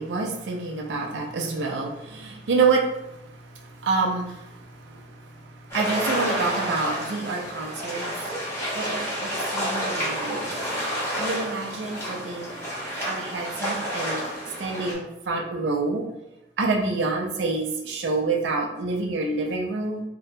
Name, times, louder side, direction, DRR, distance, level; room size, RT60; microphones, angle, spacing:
voice 1, 0.0-8.1 8.7-12.5 13.0-14.2 14.6-16.0 16.6-20.0, right 3 dB, 75° right, 1 dB, 0.4 m, -28 dB
sound 1, 5.7-14.9, equal, 15° left, 0.7 m, -30 dB
2.7 x 2.1 x 2.5 m, 0.89 s
head